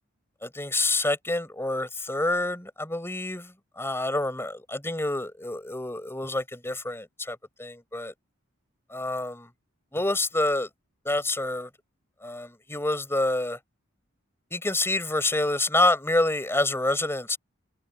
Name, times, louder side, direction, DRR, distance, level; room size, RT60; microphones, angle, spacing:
voice 1, 0.4-3.5 3.8-8.1 8.9-9.5 9.9-10.7 11.0-11.7 12.2-13.6 14.5-17.4, left 2 dB, 10° left, 4.7 m, -27 dB
head